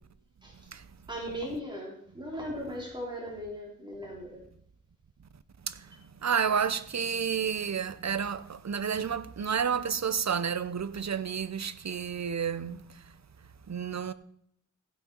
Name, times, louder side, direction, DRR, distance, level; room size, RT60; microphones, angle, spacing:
voice 1, 1.1-4.4 11.8-11.9, equal, 15° right, 3.7 m, -38 dB
voice 2, 5.6-13.1 13.7-14.1, right 7 dB, 55° right, 0.8 m, -31 dB
15.5 x 6.1 x 5.4 m
wide cardioid pair, 75°, 32 cm